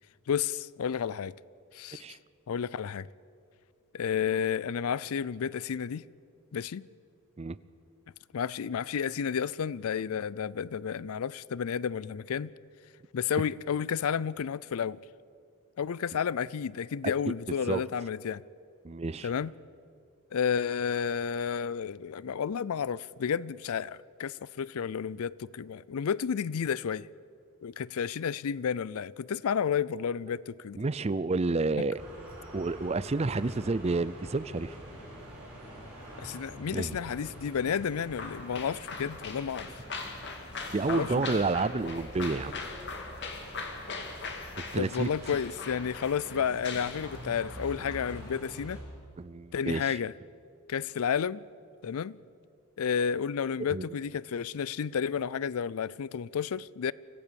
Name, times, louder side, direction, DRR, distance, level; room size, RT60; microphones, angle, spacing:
voice 1, 0.3-1.3 1.7-2.0 2.5-3.1 3.9-6.0 6.5-6.9 8.3-12.5 13.1-15.0 15.8-18.4 19.2-19.5 20.3-27.1 27.6-30.8 31.7-31.9 36.2-39.7 40.9-41.4 44.8-48.8 49.5-50.1 50.7-51.4 51.8-52.2 52.8-56.9, left 7 dB, 70° left, 0.4 m, -31 dB
voice 2, 18.8-19.3 30.8-32.0 32.5-34.8 36.7-37.0 40.7-42.6 44.6-45.1 49.2-50.0 53.7-53.8, right 3 dB, 30° right, 0.4 m, -30 dB
sound 1, 31.9-48.8, equal, 5° right, 7.1 m, -47 dB
sound 2, 38.1-48.4, left 4 dB, 50° left, 2.2 m, -41 dB
25.0 x 15.5 x 7.0 m
head